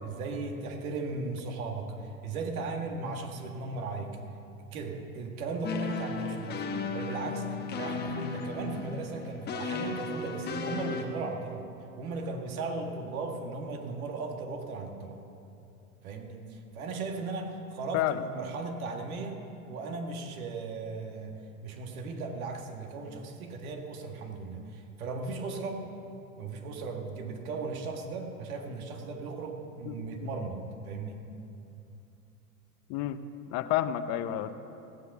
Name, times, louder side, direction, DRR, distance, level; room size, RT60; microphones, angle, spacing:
voice 1, 0.0-4.2 4.7-7.5 7.7-11.7 12.0-15.2 16.0-19.4 19.7-25.8 26.4-31.2, right 3 dB, 70° right, 4 dB, 1.8 m, -37 dB
sound 1, 5.6-11.0, left 4 dB, 25° left, 1.1 m, -35 dB
voice 2, 29.9-30.3 32.9-33.2 33.5-34.5, left 12 dB, 40° left, 11 dB, 0.7 m, -30 dB
17.0 x 8.2 x 5.9 m, 2.7 s
hypercardioid pair, 115°, 44 cm